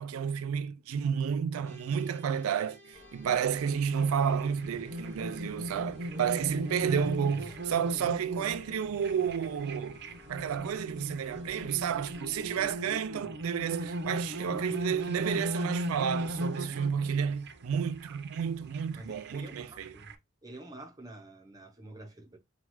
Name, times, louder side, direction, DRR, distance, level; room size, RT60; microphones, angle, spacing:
voice 1, 0.0-10.0 10.3-19.9, right 7 dB, 90° right, 0.4 m, -31 dB
sound 1, 1.6-13.1, left 3 dB, 10° left, 1.4 m, -57 dB
sound 2, 2.9-12.8, left 2 dB, 35° left, 1.0 m, -58 dB
sound 3, 3.5-20.1, equal, 55° right, 0.7 m, -38 dB
voice 2, 6.8-7.5 13.1-13.3 18.9-20.1 20.4-22.4, right 1 dB, 15° right, 0.8 m, -47 dB
5.7 x 2.4 x 3.1 m
head